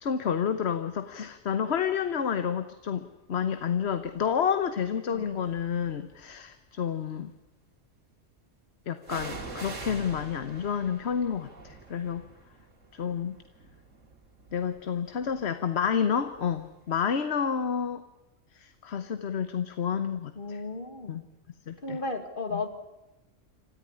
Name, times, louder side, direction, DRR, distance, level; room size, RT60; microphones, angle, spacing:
voice 1, 0.0-7.3 8.9-12.2 12.9-13.3 14.5-18.0 18.5-20.6 21.1-21.2 21.7-22.0 22.5-22.6, left 7 dB, 60° left, 10 dB, 1.2 m, -30 dB
sound 1, 4.1-4.5 5.2-6.1 9.0-16.7 17.0-17.1, right 3 dB, 85° right, 2.9 m, -45 dB
voice 2, 20.4-21.1 21.8-22.7, left 3 dB, 45° left, 7 dB, 2.2 m, -34 dB
27.0 x 14.0 x 9.8 m, 0.99 s
omnidirectional pair, 1.3 m